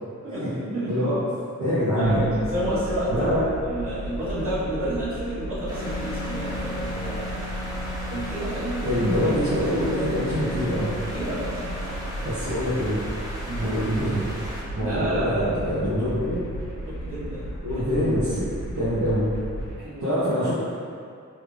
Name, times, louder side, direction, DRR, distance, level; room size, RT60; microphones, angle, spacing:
voice 1, 0.2-1.1 1.9-3.3 3.6-7.4 8.1-8.9 11.1-12.2 13.5-13.8 14.8-16.4 16.9-17.5 17.8-17.9 19.8-20.2, right 1 dB, 45° right, -13 dB, 1.4 m, -31 dB
voice 2, 1.6-2.3 3.1-3.4 8.8-10.9 12.2-13.0 13.6-14.2 14.7-16.4 17.6-19.3 20.0-20.5, equal, 65° right, -13 dB, 0.8 m, -25 dB
sound 1, 2.0-19.7, right 1 dB, 90° left, 1.0 m, -35 dB
Wind instrument woodwind instrument, 5.7-12.2, left 1 dB, 35° left, 0.5 m, -37 dB
sound 2, 5.7-14.6, equal, 10° right, 0.7 m, -37 dB
3.2 x 2.5 x 3.2 m, 2.3 s
wide cardioid pair, 135°, 30 cm